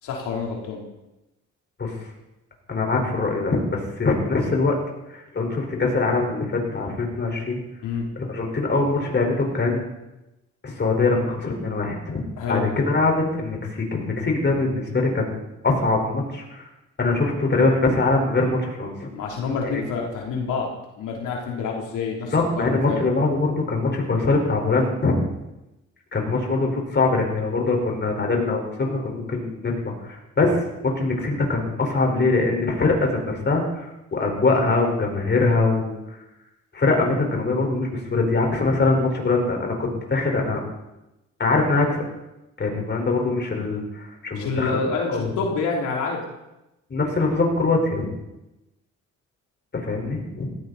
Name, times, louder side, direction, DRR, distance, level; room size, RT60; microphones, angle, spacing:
voice 1, 0.0-0.8 7.8-8.1 12.4-12.6 19.1-20.7 21.0-23.0 44.3-46.2, left 4 dB, 85° left, -1 dB, 3.5 m, -27 dB
voice 2, 2.7-4.8 5.1-7.6 8.2-9.8 10.6-15.4 15.6-16.7 17.0-19.1 19.7-19.8 22.3-25.1 26.1-36.0 36.7-40.6 41.4-42.0 42.6-44.8 45.1-45.3 46.9-48.1 49.7-50.5, left 3 dB, 35° left, 1 dB, 4.8 m, -23 dB
18.0 x 16.5 x 4.2 m, 0.94 s
cardioid pair, 90°, 30 cm